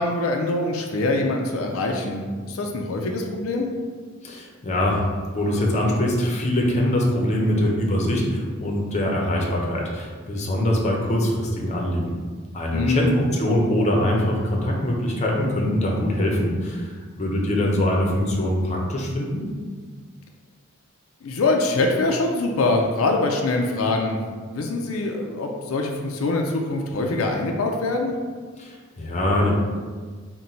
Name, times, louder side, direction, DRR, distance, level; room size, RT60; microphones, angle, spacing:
voice 1, 0.0-3.7 12.7-13.1 21.2-24.2 24.5-28.1, left 2 dB, 90° left, 2 dB, 0.4 m, -24 dB
voice 2, 4.2-5.0 5.3-12.2 12.5-19.4 28.6-29.5, left 1 dB, 35° left, -1 dB, 0.7 m, -23 dB
3.9 x 2.2 x 4.3 m, 1.5 s
head